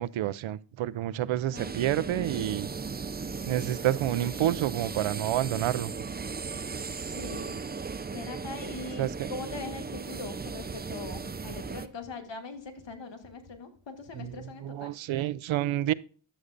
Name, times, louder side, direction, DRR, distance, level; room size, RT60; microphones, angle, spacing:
voice 1, 0.0-2.7 3.5-5.9 9.0-9.3 14.2-14.3 14.6-15.9, right 13 dB, 90° right, 0.5 m, -29 dB
sound 1, 1.5-11.9, right 4 dB, 20° right, 0.6 m, -37 dB
voice 2, 7.0-7.6 8.1-14.9, left 4 dB, 70° left, 2.0 m, -41 dB
11.0 x 8.0 x 2.5 m
cardioid pair, 65°, 46 cm